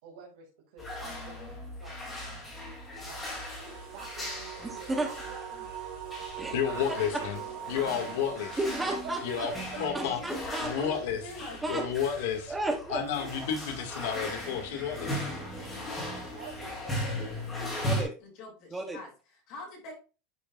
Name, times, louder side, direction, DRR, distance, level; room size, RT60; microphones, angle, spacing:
voice 1, 0.0-2.6 3.1-3.2 3.9-4.6 5.0-7.5 8.5-10.0 10.6-10.9 16.3-17.2, right 5 dB, 65° right, -3 dB, 2.2 m, -48 dB
sound 1, 0.8-18.0, equal, 15° left, 2.5 m, -38 dB
sound 2, 3.6-9.9, right 10 dB, 40° right, 3.9 m, -42 dB
voice 2, 4.6-5.1 6.4-6.6 8.6-9.2 9.9-10.7 11.6-11.9 12.5-13.0 17.8-18.1 18.7-19.0, right 2 dB, 10° right, 5 dB, 0.7 m, -32 dB
voice 3, 6.5-7.4 7.7-8.6 9.2-9.5 9.8-10.2 10.6-11.2 11.7-12.5 12.9-15.2, left 8 dB, 70° left, 5 dB, 1.8 m, -31 dB
voice 4, 9.7-11.9 18.2-19.9, left 1 dB, 40° left, 0 dB, 2.5 m, -44 dB
10.5 x 5.2 x 2.4 m, 0.34 s
supercardioid pair, 170°, 0 cm